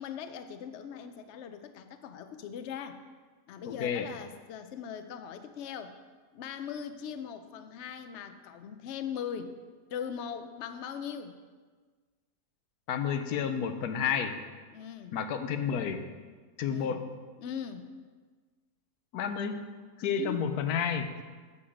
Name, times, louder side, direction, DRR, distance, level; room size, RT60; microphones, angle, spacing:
voice 1, 0.0-3.0 3.5-6.0 6.3-9.5 9.9-11.4 14.7-15.2 16.6-17.0 17.4-17.9 20.2-20.5 21.2-21.3, left 8 dB, 60° left, 9 dB, 0.8 m, -40 dB
voice 2, 3.7-4.1 12.9-14.4 15.1-16.0 16.6-17.1 19.1-19.6 20.0-21.1, left 7 dB, 85° left, 8 dB, 1.3 m, -30 dB
8.6 x 7.5 x 5.0 m, 1.4 s
omnidirectional pair, 1.6 m